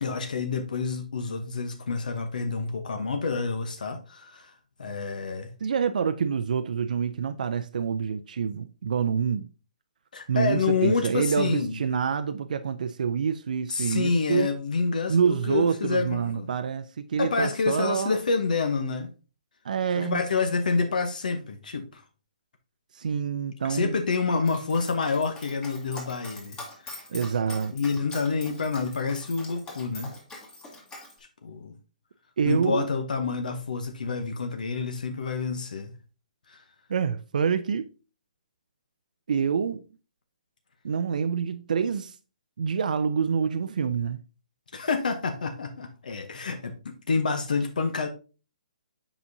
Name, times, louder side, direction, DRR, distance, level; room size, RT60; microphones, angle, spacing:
voice 1, 0.0-4.5 4.8-5.5 10.1-11.8 13.7-16.5 17.2-19.1 19.9-22.0 23.6-27.0 27.7-30.1 31.4-31.7 32.4-35.9 36.5-36.6 44.7-48.1, left 4 dB, 75° left, 0.9 m, -28 dB
voice 2, 5.6-9.4 10.3-14.5 15.1-18.2 19.6-20.2 22.9-24.0 27.1-27.7 32.4-32.9 36.9-37.9 39.3-39.8 40.8-42.2 42.6-44.2, right 6 dB, 70° right, 0.5 m, -27 dB
Dog, 24.4-31.1, left 2 dB, 15° left, 1.6 m, -43 dB
7.2 x 5.0 x 2.7 m
hypercardioid pair, 145°, 4 cm